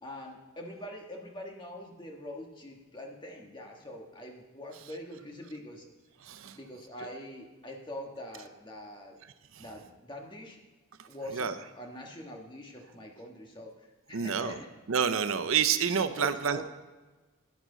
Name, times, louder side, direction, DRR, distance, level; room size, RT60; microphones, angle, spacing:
voice 1, 0.0-5.9 6.5-9.2 9.6-10.6 11.1-14.7 16.2-16.6, left 1 dB, 25° left, 1 dB, 1.4 m, -44 dB
voice 2, 6.2-6.6 9.5-9.6 11.0-11.5 14.1-14.6 14.9-16.6, right 7 dB, 80° right, 10 dB, 0.6 m, -29 dB
11.0 x 10.5 x 3.9 m, 1.2 s
head